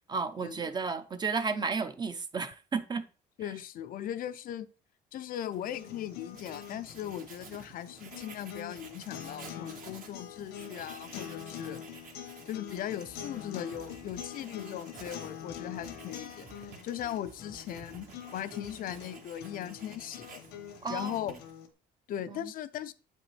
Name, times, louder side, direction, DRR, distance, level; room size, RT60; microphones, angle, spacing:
voice 1, 0.1-3.0 20.8-21.2 22.3-22.5, right 4 dB, 25° right, 0.5 m, -33 dB
voice 2, 3.4-4.7 5.1-11.8 12.5-20.4 20.9-21.3 22.1-22.9, left 11 dB, 55° left, 0.4 m, -38 dB
Writing, 5.5-21.7, right 5 dB, 55° right, 1.1 m, -52 dB
sound 1, 5.7-21.7, left 9 dB, 85° left, 0.9 m, -45 dB
sound 2, 12.7-19.1, right 3 dB, 85° right, 2.2 m, -55 dB
7.6 x 5.1 x 3.2 m
cardioid pair, 110°, 17 cm